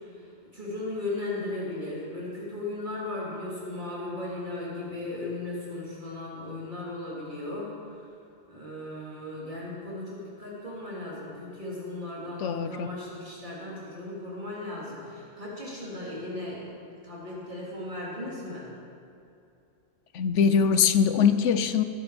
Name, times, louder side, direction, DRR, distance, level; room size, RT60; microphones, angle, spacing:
voice 1, 0.5-7.7 8.5-16.7 17.0-18.7, left 2 dB, 40° right, -6 dB, 3.7 m, -36 dB
voice 2, 12.4-12.9 20.1-21.8, left 6 dB, 85° left, 10 dB, 1.1 m, -22 dB
20.0 x 10.5 x 5.2 m, 2.5 s
omnidirectional pair, 1.2 m